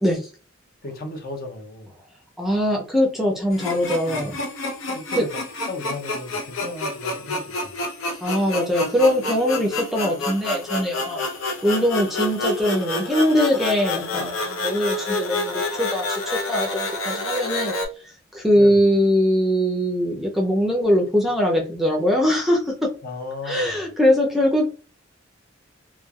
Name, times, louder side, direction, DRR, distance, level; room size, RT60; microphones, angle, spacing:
voice 1, 0.8-1.9 4.1-4.3 4.9-5.3 5.7-7.8 18.5-18.8 23.0-23.8, left 2 dB, 45° left, 0.5 m, -35 dB
voice 2, 2.4-4.4 5.2-5.3 8.2-11.2 11.6-17.8 18.3-22.9 23.5-24.7, equal, ahead, 0.5 m, -21 dB
sound 1, 3.5-17.9, left 2 dB, 85° left, 0.7 m, -28 dB
3.1 x 2.3 x 2.3 m
head